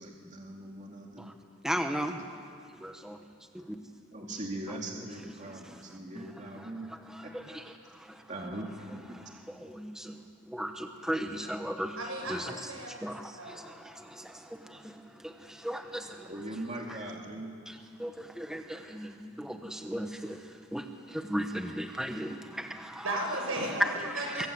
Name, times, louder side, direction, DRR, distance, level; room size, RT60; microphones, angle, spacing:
voice 1, 0.0-1.4 4.1-6.9 7.2-7.6 8.3-9.2 16.3-17.6, right 1 dB, 35° right, 0 dB, 2.4 m, -41 dB
voice 2, 1.6-2.2 2.8-3.2 3.5-3.8 6.2-6.3 7.2-7.6 7.9-8.2 9.5-10.2 10.5-12.0 12.3-12.5 13.0-16.3 17.7-17.8 18.0-23.0 23.8-24.5, equal, 5° right, 5 dB, 1.0 m, -36 dB
voice 3, 12.0-12.9 13.4-13.6 23.0-24.5, right 1 dB, 85° right, 0 dB, 7.9 m, -35 dB
25.0 x 24.0 x 8.0 m, 2.3 s
head